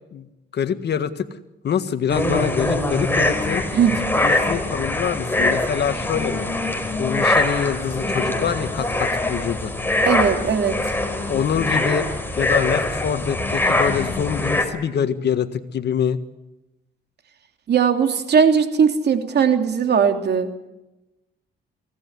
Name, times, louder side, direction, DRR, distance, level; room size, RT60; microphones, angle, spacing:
voice 1, 0.5-1.3 1.6-3.6 4.2-6.5 7.0-9.7 11.3-12.1 12.4-16.2, left 8 dB, 60° left, 10 dB, 1.7 m, -25 dB
sound 1, 2.1-14.7, left 2 dB, 10° left, 4.9 m, -23 dB
voice 2, 10.0-10.9 17.7-20.5, right 7 dB, 55° right, 6 dB, 3.0 m, -19 dB
24.0 x 17.5 x 9.6 m, 0.97 s
cardioid pair, 90°, 20 cm